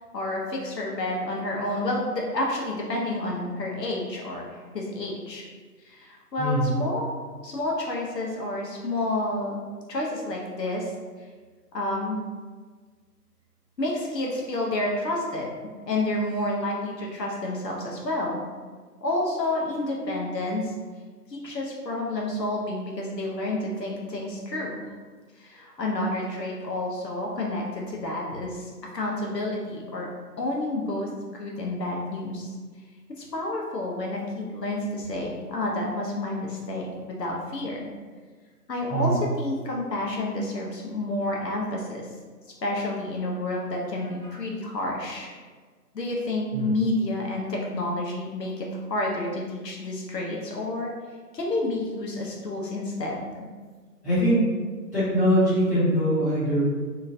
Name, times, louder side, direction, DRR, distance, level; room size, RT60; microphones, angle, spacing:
voice 1, 0.1-5.4 5.8-7.1 7.4-9.6 9.9-10.9 11.7-12.2 13.8-15.5 15.9-18.4 19.0-20.7 21.3-24.7 25.4-30.1 30.4-32.5 33.3-37.8 38.7-42.0 42.6-45.3 45.9-50.9 51.3-53.2, left 1 dB, 80° left, -2 dB, 0.8 m, -29 dB
voice 2, 6.4-6.7 38.9-39.2 46.5-46.7 54.0-54.4 54.9-56.6, equal, 10° left, -21 dB, 1.1 m, -22 dB
2.9 x 2.4 x 2.6 m, 1.5 s
figure-of-eight pair, 165°, 48 cm